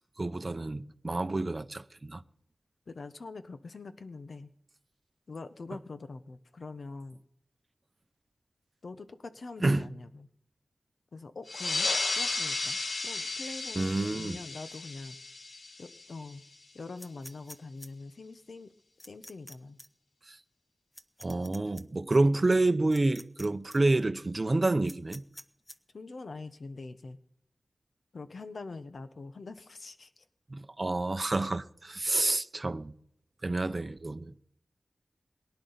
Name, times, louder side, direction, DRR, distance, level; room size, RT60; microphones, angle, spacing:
voice 1, 0.2-2.2 9.6-9.9 13.8-14.4 20.3-20.4 21.2-25.2 30.5-32.9 33.4-34.3, right 2 dB, 35° right, 0.6 m, -28 dB
voice 2, 2.9-4.5 5.3-7.2 8.8-10.3 11.1-15.2 15.8-16.4 16.7-18.7 19.0-19.8 25.9-27.2 28.1-30.2, left 3 dB, 65° left, 0.8 m, -44 dB
sound 1, 11.5-16.5, left 3 dB, 90° left, 1.2 m, -34 dB
sound 2, 17.0-17.9 19.0-19.5 19.8-19.9 20.9-21.8 22.9-23.4 23.7-23.8 24.9-25.8, left 1 dB, 20° left, 0.8 m, -48 dB
22.5 x 10.5 x 4.0 m
wide cardioid pair, 90°, 0 cm